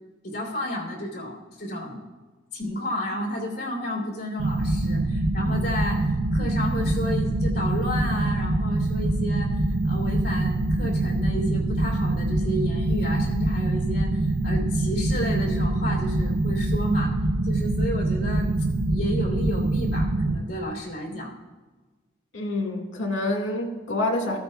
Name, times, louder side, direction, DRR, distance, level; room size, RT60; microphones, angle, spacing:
voice 1, 0.2-2.0 2.5-17.1 17.4-18.5 18.9-21.3, equal, 55° left, -1 dB, 3.3 m, -31 dB
sound 1, 4.4-20.4, right 2 dB, 85° right, 0.7 m, -24 dB
voice 2, 22.3-24.4, left 2 dB, 80° left, 2 dB, 1.9 m, -27 dB
14.5 x 13.5 x 2.3 m, 1.3 s
head